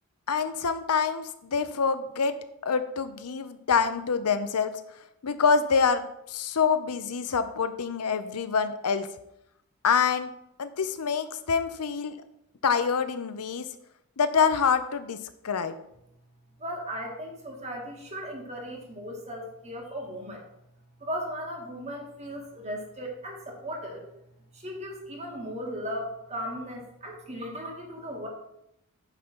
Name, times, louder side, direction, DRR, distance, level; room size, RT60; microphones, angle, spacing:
voice 1, 0.3-2.4 2.6-4.8 5.2-9.1 9.8-10.3 10.6-12.2 12.6-13.7 14.2-15.2 15.4-15.7, left 6 dB, 90° left, 11 dB, 0.7 m, -26 dB
voice 2, 16.6-20.4 21.0-24.0 24.5-28.3, equal, 30° right, 0 dB, 1.9 m, -37 dB
9.2 x 3.9 x 6.1 m, 0.80 s
head